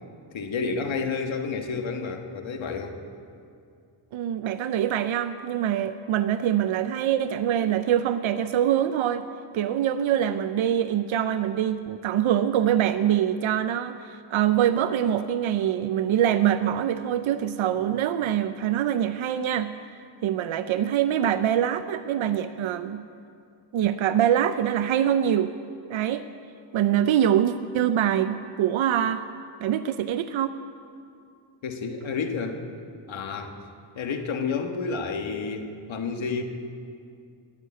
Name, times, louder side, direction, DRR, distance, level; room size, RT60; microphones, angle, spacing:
voice 1, 0.3-3.0 31.6-32.6 33.1-33.5 33.9-36.4, left 5 dB, 80° left, 5 dB, 1.4 m, -30 dB
voice 2, 4.1-9.3 9.5-19.7 20.2-23.0 23.7-25.5 25.9-26.2 26.7-29.2 29.6-30.5, right 10 dB, 85° right, 11 dB, 0.6 m, -24 dB
16.0 x 6.7 x 9.9 m, 2.4 s
cardioid pair, 90°, 46 cm